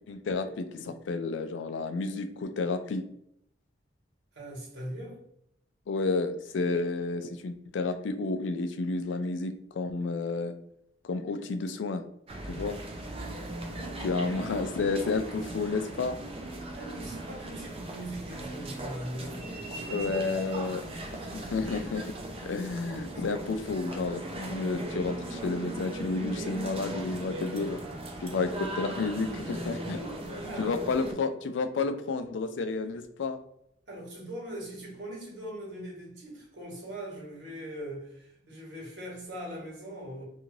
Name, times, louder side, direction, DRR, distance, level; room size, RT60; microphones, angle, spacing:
voice 1, 0.1-3.0 5.9-10.5 11.0-12.0 12.5-12.8 14.0-16.2 19.9-20.9 21.1-27.8 28.2-30.0 30.6-33.4, left 3 dB, 85° left, 0.4 m, -31 dB
voice 2, 4.3-5.2 13.7-14.4 16.7-20.9 29.9-31.1 33.9-40.2, right 1 dB, 80° right, 1.3 m, -41 dB
sound 1, 12.3-31.1, right 1 dB, 30° right, 0.5 m, -38 dB
2.7 x 2.5 x 3.0 m
head